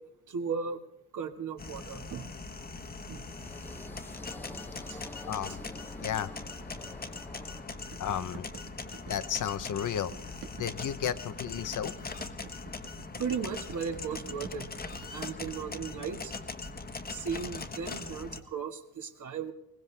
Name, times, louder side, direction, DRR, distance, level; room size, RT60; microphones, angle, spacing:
voice 1, 0.3-0.8 1.1-2.3 3.1-3.2 4.9-5.0 13.2-14.7 15.1-16.3 17.1-19.5, right 6 dB, 50° right, 6 dB, 1.7 m, -36 dB
sound 1, 1.6-18.4, left 3 dB, 25° left, 1.3 m, -41 dB
sound 2, 3.1-8.3, left 1 dB, 5° left, 0.9 m, -48 dB
voice 2, 5.2-5.6 6.0-6.3 8.0-8.5 9.1-10.1 10.5-12.1, left 9 dB, 50° left, 12 dB, 0.9 m, -33 dB
sound 3, 7.9-15.5, right 7 dB, 90° right, 1.8 m, -48 dB
21.5 x 18.5 x 3.4 m, 0.84 s
cardioid pair, 125°, 39 cm